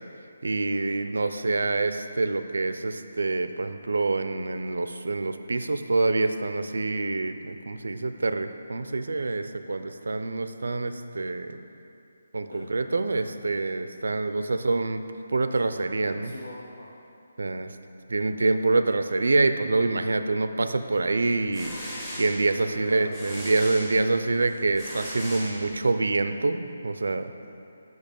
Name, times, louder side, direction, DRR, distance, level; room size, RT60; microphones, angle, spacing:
voice 1, 0.4-11.6 12.3-15.0 15.3-16.3 17.4-17.8 18.1-21.8 22.2-27.3, right 3 dB, 85° right, 9 dB, 0.4 m, -26 dB
voice 2, 16.2-16.9 22.6-23.3 27.4-27.5, left 1 dB, 70° left, -4 dB, 0.8 m, -43 dB
sound 1, 21.2-26.1, equal, 10° left, 0.8 m, -39 dB
6.2 x 5.2 x 5.2 m, 2.6 s
hypercardioid pair, 180°, 0 cm